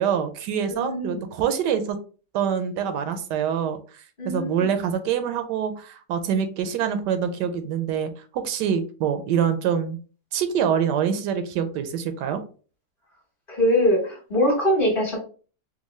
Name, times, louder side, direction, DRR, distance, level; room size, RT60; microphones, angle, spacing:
voice 1, 0.0-2.0 2.3-3.8 4.2-10.0 10.3-12.4, right 8 dB, 85° right, 8 dB, 1.2 m, -25 dB
voice 2, 0.7-1.2 4.2-4.7 13.5-15.2, left 1 dB, 35° left, -2 dB, 1.3 m, -22 dB
3.6 x 2.2 x 3.0 m, 0.38 s
omnidirectional pair, 1.8 m